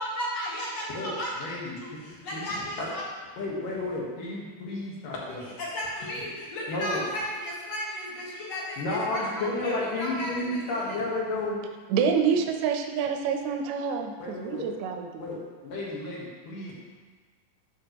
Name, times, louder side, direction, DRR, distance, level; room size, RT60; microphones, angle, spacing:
voice 1, 0.0-1.3 1.8-3.0 5.6-11.0, equal, 55° left, -6 dB, 2.7 m, -34 dB
voice 2, 0.9-2.5 3.4-5.5 6.7-7.0 8.8-11.6 14.2-14.7 15.2-15.4 15.6-16.8, left 2 dB, 80° left, -4 dB, 3.0 m, -32 dB
voice 3, 11.9-15.2, right 6 dB, 75° right, 4 dB, 1.8 m, -27 dB
11.5 x 5.7 x 2.9 m, 1.4 s
omnidirectional pair, 3.8 m